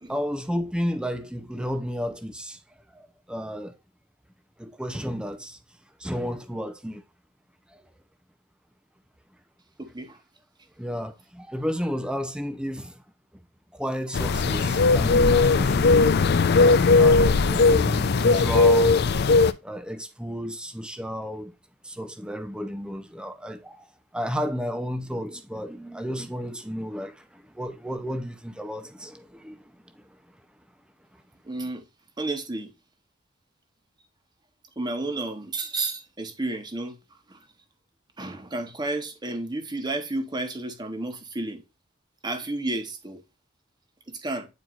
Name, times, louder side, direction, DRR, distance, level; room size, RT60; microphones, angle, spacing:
voice 1, 0.1-2.6 2.9-3.8 4.6-5.6 6.0-7.0 7.7-7.8 10.8-13.0 13.7-16.1 16.9-19.0 19.6-21.5 21.8-29.6 29.9-30.2, equal, 5° right, 0.6 m, -32 dB
voice 2, 9.8-10.2 31.4-31.8 32.2-32.7 34.8-37.0 37.3-37.4 38.2-41.6 42.2-43.2 44.1-44.5, right 2 dB, 20° right, 1.0 m, -31 dB
sound 1, 14.1-19.5, left 3 dB, 50° left, 0.4 m, -18 dB
9.4 x 4.4 x 2.4 m
head